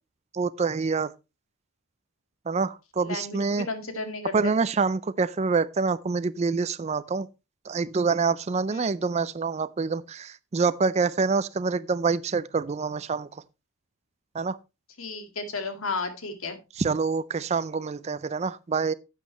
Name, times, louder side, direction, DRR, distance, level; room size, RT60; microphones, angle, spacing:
voice 1, 0.3-1.1 2.5-3.7 4.3-7.3 7.7-13.3 14.3-14.6 16.8-18.9, right 4 dB, 30° right, 0.4 m, -26 dB
voice 2, 3.0-4.6 8.7-8.9 15.0-16.6, left 3 dB, 70° left, 1.9 m, -33 dB
11.5 x 8.3 x 3.0 m
head